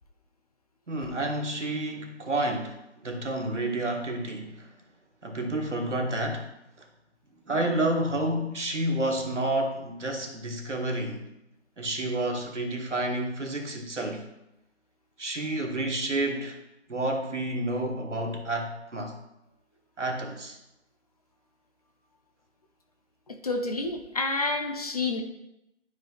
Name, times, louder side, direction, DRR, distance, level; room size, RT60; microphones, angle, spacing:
voice 1, 0.9-4.7 5.2-6.5 6.8-6.9 7.5-11.3 11.8-14.3 15.2-16.6 16.9-19.2 20.0-20.6, right 1 dB, 85° right, 2 dB, 1.6 m, -30 dB
voice 2, 23.3-25.2, left 3 dB, 35° left, 4 dB, 0.7 m, -29 dB
11.5 x 4.9 x 2.4 m, 0.86 s
figure-of-eight pair, 155°, 35 cm